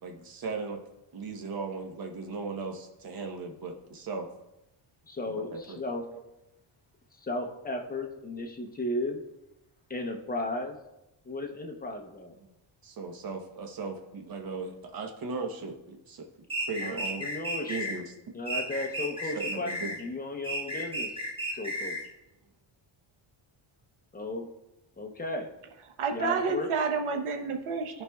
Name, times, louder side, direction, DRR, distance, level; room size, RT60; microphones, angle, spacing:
voice 1, 0.0-0.8 1.1-4.3 5.3-5.8 6.1-6.2 12.8-16.3 16.6-17.2 17.7-18.1 19.3-19.9 21.5-21.6, right 4 dB, 45° right, 3 dB, 1.0 m, -37 dB
voice 2, 5.1-6.0 7.2-9.2 9.9-10.8 11.3-12.3 16.8-18.0 18.3-21.1 21.5-22.0 24.1-24.5 25.0-25.5 26.1-26.7, left 2 dB, 20° left, 3 dB, 0.7 m, -35 dB
sound 1, 16.5-18.0 18.5-20.0 20.4-22.1, equal, 10° right, 1.2 m, -33 dB
voice 3, 26.0-28.0, right 5 dB, 90° right, 4 dB, 1.0 m, -29 dB
14.0 x 5.2 x 2.3 m, 0.93 s
wide cardioid pair, 175°, 48 cm